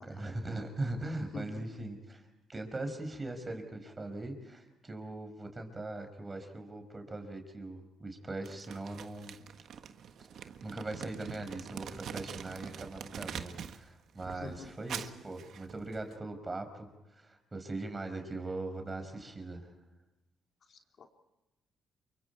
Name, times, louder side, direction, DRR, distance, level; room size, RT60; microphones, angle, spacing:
voice 1, 0.0-9.3 10.3-19.7, right 2 dB, 25° right, 6 dB, 5.2 m, -40 dB
voice 2, 1.3-1.8 14.3-14.7 20.7-21.1, left 3 dB, 55° left, 3 dB, 3.1 m, -46 dB
Crumpling crinkling, 8.4-13.8 14.1-16.1, right 8 dB, 65° right, 1.5 m, -44 dB
28.5 x 24.5 x 4.7 m, 0.98 s
cardioid pair, 90°, 0 cm